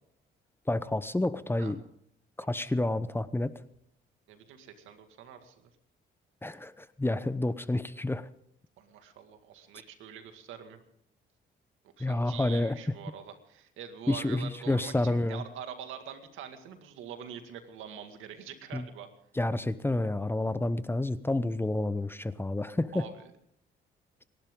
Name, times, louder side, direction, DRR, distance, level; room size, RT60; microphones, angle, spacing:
voice 1, 0.7-1.8 2.4-3.5 6.4-8.3 12.0-12.8 14.1-15.4 18.7-18.9 19.4-23.0, left 2 dB, 10° left, 14 dB, 0.8 m, -29 dB
voice 2, 4.3-5.7 8.8-10.8 12.0-19.1 22.9-23.3, right 8 dB, 90° right, 7 dB, 2.1 m, -45 dB
28.5 x 11.5 x 3.8 m, 0.70 s
cardioid pair, 90°, 20 cm